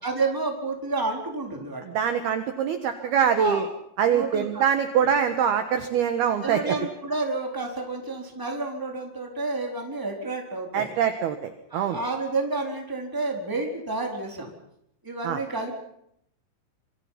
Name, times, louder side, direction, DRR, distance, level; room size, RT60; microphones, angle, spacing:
voice 1, 0.0-1.8 2.8-3.1 3.4-3.6 4.1-4.7 6.4-10.9 11.7-14.5 15.0-15.8, right 3 dB, 5° right, 1 dB, 3.5 m, -30 dB
voice 2, 1.8-3.7 4.0-6.7 10.7-12.0 15.2-15.4, right 8 dB, 65° right, 8 dB, 2.7 m, -24 dB
26.5 x 25.0 x 5.9 m, 0.73 s
omnidirectional pair, 5.8 m